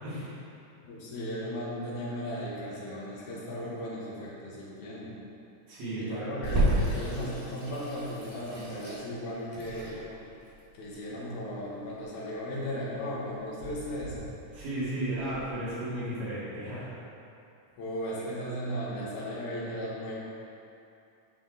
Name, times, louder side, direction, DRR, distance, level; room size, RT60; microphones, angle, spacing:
voice 1, 0.0-0.3 5.7-6.3 14.5-16.9, right 1 dB, 65° right, -10 dB, 2.9 m, -34 dB
voice 2, 0.8-5.2 6.0-10.1 10.7-14.3 17.8-20.2, equal, 75° left, -6 dB, 2.6 m, -36 dB
Water tap faucet / Sink (filling or washing), 6.4-15.4, right 1 dB, 80° right, 0.3 m, -34 dB
8.5 x 4.2 x 3.8 m, 2.7 s
omnidirectional pair, 3.5 m